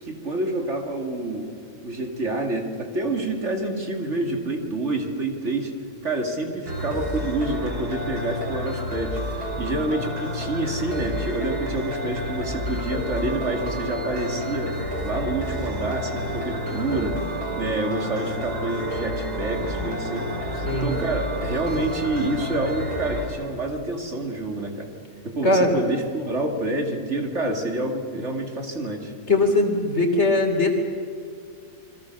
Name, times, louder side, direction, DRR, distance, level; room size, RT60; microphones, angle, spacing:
voice 1, 0.0-1.5 1.8-5.7 6.0-14.8 15.0-17.2 17.5-20.5 20.8-24.9 25.2-29.1, right 2 dB, 50° right, 3 dB, 2.8 m, -28 dB
sound 1, 6.7-23.3, equal, 80° right, 5.4 m, -30 dB
voice 2, 25.4-25.8 29.3-30.8, left 2 dB, 45° left, 4 dB, 3.3 m, -20 dB
28.0 x 22.5 x 6.7 m, 2.4 s
omnidirectional pair, 1.6 m